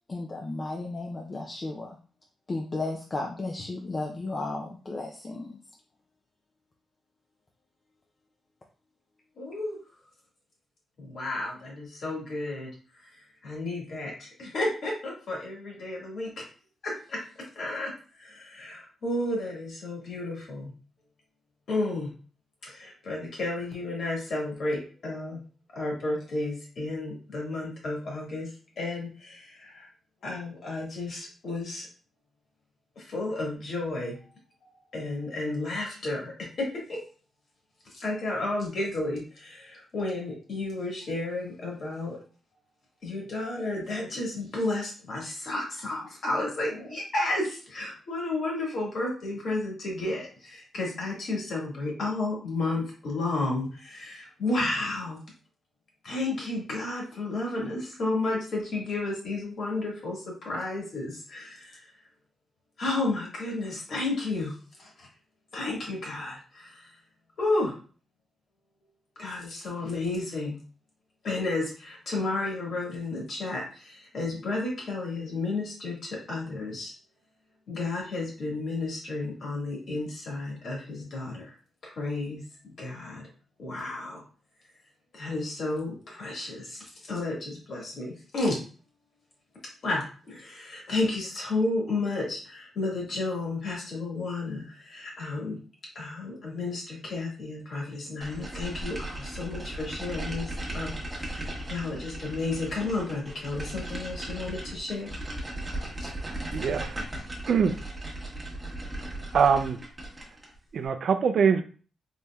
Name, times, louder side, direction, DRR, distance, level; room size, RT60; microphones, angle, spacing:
voice 1, 0.1-1.9 2.5-5.5, left 2 dB, 30° left, 0 dB, 0.5 m, -34 dB
voice 2, 9.4-9.8 11.0-12.7 12.9-13.1 13.4-16.4 16.8-17.2 17.5-17.9 18.2-20.7 21.7-22.1 22.6-25.4 25.7-28.5 28.8-29.9 30.2-31.9 32.9-34.2 34.9-36.3 36.6-37.0 37.9-42.2 43.0-55.2 56.0-61.9 62.8-65.1 65.5-66.9 67.4-67.7 69.2-70.6 71.2-76.9 77.7-81.5 81.8-83.3 83.6-84.2 85.1-88.5 89.8-95.6 95.9-105.1 106.0-106.1, left 2 dB, 60° left, -2 dB, 1.6 m, -32 dB
sound 1, 98.2-110.6, right 1 dB, 20° right, 1.0 m, -37 dB
voice 3, 106.5-107.0 107.5-107.7 109.3-109.8 110.7-111.6, right 6 dB, 60° right, 9 dB, 0.4 m, -23 dB
4.1 x 3.4 x 2.3 m, 0.39 s
wide cardioid pair, 125°, 0 cm